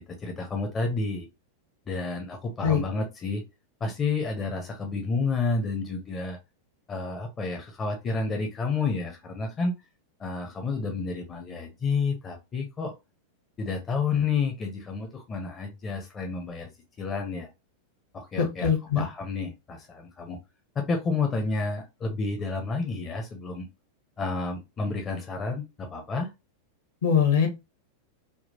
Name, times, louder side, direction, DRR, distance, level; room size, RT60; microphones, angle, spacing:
voice 1, 0.2-1.3 1.9-3.4 3.8-6.4 6.9-9.8 10.2-12.9 13.6-16.7 17.0-17.5 18.1-20.4 20.8-23.7 24.2-26.3, left 4 dB, 25° left, 3 dB, 0.7 m, -30 dB
voice 2, 18.4-19.0 27.0-27.5, left 7 dB, 60° left, 4 dB, 1.1 m, -22 dB
3.6 x 2.3 x 2.7 m, 0.24 s
figure-of-eight pair, 90°, 0 cm